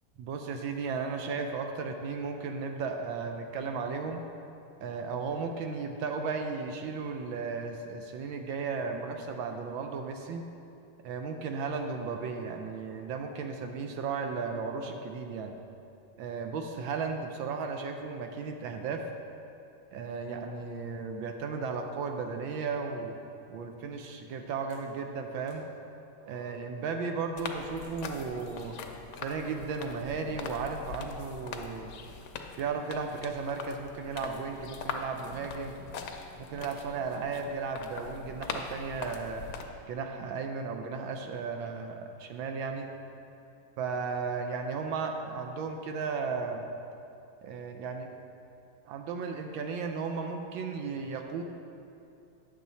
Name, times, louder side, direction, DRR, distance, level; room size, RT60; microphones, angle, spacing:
voice 1, 0.2-4.2 4.8-10.4 11.0-15.5 16.2-19.1 19.9-23.2 23.5-25.7 26.3-28.8 29.2-31.9 32.6-35.8 36.4-39.4 39.9-42.9 43.8-46.6 47.4-48.1 48.8-51.4, right 5 dB, 75° right, 4 dB, 1.3 m, -35 dB
sound 1, 24.7-24.9 25.5-25.6 26.2-26.7 27.8-28.0 28.6-28.7 29.3-29.9, right 4 dB, 60° right, 1.5 m, -54 dB
sound 2, 27.3-39.6, left 5 dB, 70° left, 1.0 m, -42 dB
8.9 x 6.8 x 4.1 m, 2.6 s
omnidirectional pair, 2.3 m